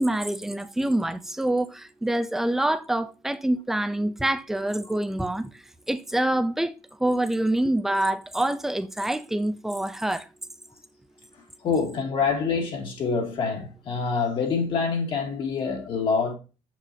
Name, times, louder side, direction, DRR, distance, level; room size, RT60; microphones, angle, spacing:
voice 1, 0.0-5.5 5.9-6.7 7.0-10.3, right 1 dB, 5° right, 0.4 m, -26 dB
voice 2, 11.6-16.3, left 5 dB, 45° left, 2.0 m, -26 dB
6.7 x 6.1 x 2.6 m
cardioid pair, 175°, 12 cm